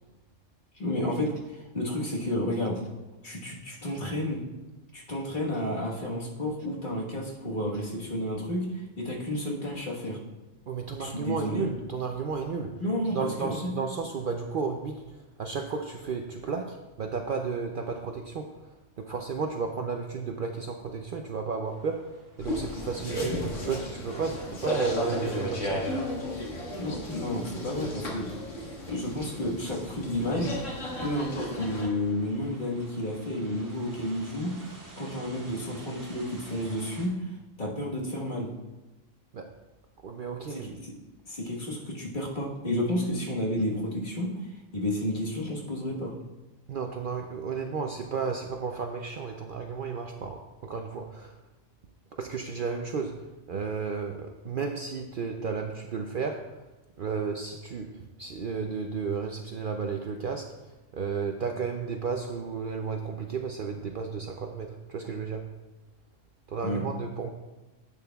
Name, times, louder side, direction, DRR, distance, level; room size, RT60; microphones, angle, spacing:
voice 1, 0.7-2.8 3.2-4.4 4.9-10.2 11.0-11.7 12.8-13.7 26.7-28.3 28.6-30.5 31.0-37.3 37.6-38.5 40.5-40.9 41.2-46.1 66.6-66.8, left 1 dB, 40° left, -3 dB, 1.5 m, -31 dB
voice 2, 10.7-12.8 13.1-18.7 19.0-25.9 39.3-39.5 40.0-40.7 46.7-51.4 52.2-56.6 57.0-60.5 60.9-65.5 66.5-67.3, right 5 dB, 55° right, 3 dB, 0.6 m, -33 dB
sound 1, 21.7-37.1, right 2 dB, 85° right, 2.1 m, -53 dB
sound 2, 22.4-31.9, left 1 dB, 85° left, 1.9 m, -34 dB
10.5 x 8.4 x 2.3 m, 1.1 s
omnidirectional pair, 1.3 m